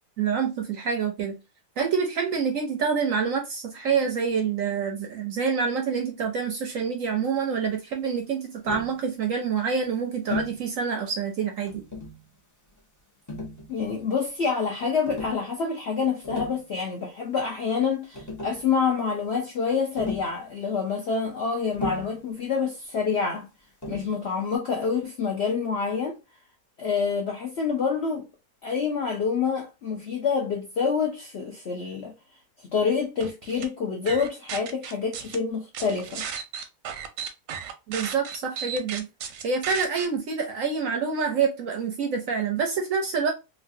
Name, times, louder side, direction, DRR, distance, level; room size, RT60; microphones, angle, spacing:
voice 1, 0.2-1.3 1.8-11.8 37.9-39.1 39.4-43.3, right 6 dB, 65° right, 0.8 m, -27 dB
Tap, 8.6-9.0 10.3-10.6 11.7-12.2 13.3-14.0 15.0-15.4 16.1-16.6 17.8-17.9 18.1-18.7 20.0-20.4 21.7-22.2 23.8-24.1, left 3 dB, 25° left, 0.4 m, -34 dB
voice 2, 13.7-23.5 23.9-26.2 26.8-28.3 28.6-32.1 32.7-36.2, left 5 dB, 70° left, 0.6 m, -27 dB
sound 1, 33.2-33.7 34.1-35.4 35.7-40.1, right 7 dB, 85° right, 1.2 m, -34 dB
3.1 x 2.4 x 2.5 m
omnidirectional pair, 1.8 m